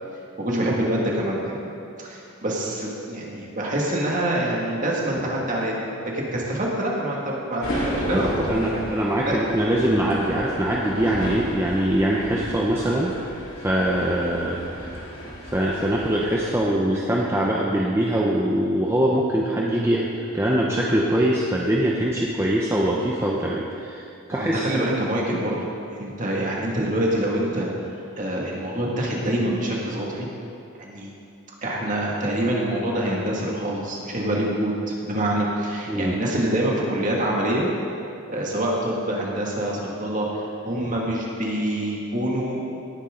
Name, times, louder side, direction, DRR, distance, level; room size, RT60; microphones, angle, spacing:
voice 1, 0.4-1.6 2.0-5.8 6.1-8.8 9.2-9.4 24.3-25.7 26.0-27.7 28.2-30.3 30.8-31.1 31.6-37.7 38.3-42.6, right 1 dB, 35° right, -3 dB, 2.1 m, -25 dB
sound 1, 7.6-16.4, equal, 70° left, 2.7 m, -33 dB
voice 2, 8.1-13.2 13.6-15.0 15.5-24.0 24.3-24.7 35.9-36.2, right 1 dB, 10° right, -4 dB, 0.8 m, -23 dB
18.0 x 10.0 x 3.9 m, 2.6 s
head